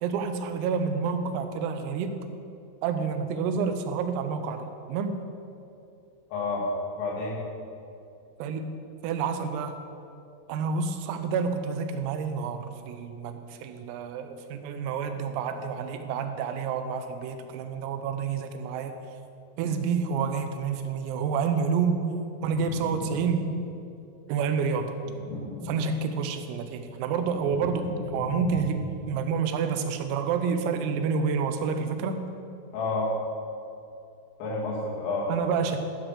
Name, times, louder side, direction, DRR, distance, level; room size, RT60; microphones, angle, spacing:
voice 1, 0.0-2.2 2.8-5.2 8.4-8.7 9.0-9.7 10.5-18.9 19.6-22.1 22.4-23.5 24.3-24.9 25.7-27.9 28.1-32.2 35.3-35.9, right 6 dB, 90° right, 7 dB, 3.5 m, -29 dB
voice 2, 6.3-6.7 7.0-7.4 32.7-33.2 34.4-35.3, left 3 dB, 75° left, -5 dB, 4.8 m, -29 dB
sound 1, 22.3-23.9 24.9-26.4 26.8-29.1, left 3 dB, 60° left, 3.9 m, -37 dB
12.5 x 6.0 x 6.5 m, 2.6 s
omnidirectional pair, 5.9 m